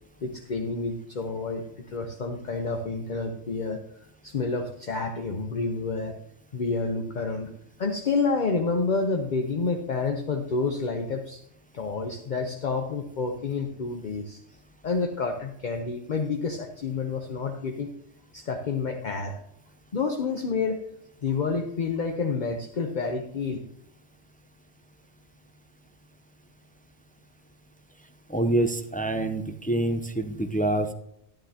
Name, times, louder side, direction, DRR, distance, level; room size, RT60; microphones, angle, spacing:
voice 1, 0.2-3.8 4.2-6.1 6.5-7.5 7.8-11.4 11.7-14.4 14.8-17.9 18.3-19.4 19.9-20.8 21.2-23.6, left 4 dB, 45° left, 4 dB, 0.9 m, -29 dB
voice 2, 28.3-30.9, right 1 dB, 15° left, 7 dB, 0.3 m, -26 dB
12.0 x 11.5 x 2.8 m, 0.74 s
omnidirectional pair, 1.2 m